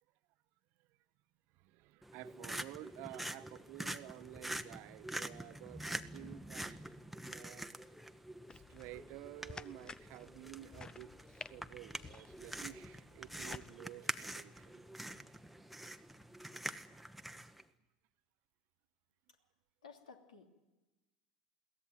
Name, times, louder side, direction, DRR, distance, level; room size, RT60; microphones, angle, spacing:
voice 1, 1.5-6.9 7.2-7.7 8.5-14.8, right 16 dB, 55° right, 0.8 m, -52 dB
sound 1, 2.0-17.6, right 1 dB, ahead, 1.1 m, -46 dB
sound 2, 8.5-13.7, left 4 dB, 20° left, 0.7 m, -53 dB
voice 2, 19.8-20.5, left 5 dB, 80° left, 2.9 m, -55 dB
22.0 x 17.5 x 9.2 m
figure-of-eight pair, 80°, 4 cm